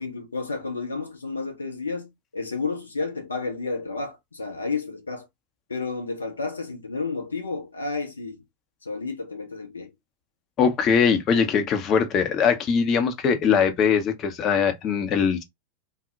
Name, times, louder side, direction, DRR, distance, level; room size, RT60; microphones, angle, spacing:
voice 1, 0.0-5.3 5.7-8.4 8.8-9.9, left 4 dB, 75° left, 0.6 m, -31 dB
voice 2, 10.6-15.4, left 6 dB, 30° left, 0.6 m, -21 dB
2.1 x 2.0 x 3.7 m
figure-of-eight pair, 90°, 0 cm